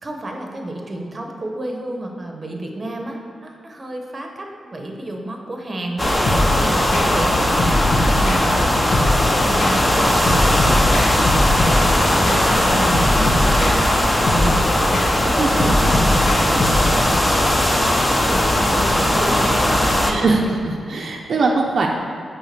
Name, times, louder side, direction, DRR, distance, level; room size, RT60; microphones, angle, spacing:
voice 1, 0.0-7.9 8.2-11.2 11.8-14.8 15.2-20.6, right 1 dB, 25° right, 2 dB, 0.8 m, -31 dB
sound 1, 6.0-20.1, left 1 dB, 15° left, 0.7 m, -18 dB
sound 2, 6.3-17.1, left 1 dB, 85° left, 1.2 m, -23 dB
voice 2, 15.4-15.8 17.0-17.1 20.1-21.9, right 3 dB, 55° right, 0 dB, 0.6 m, -21 dB
8.3 x 3.6 x 6.5 m, 2.4 s
wide cardioid pair, 160°, 0 cm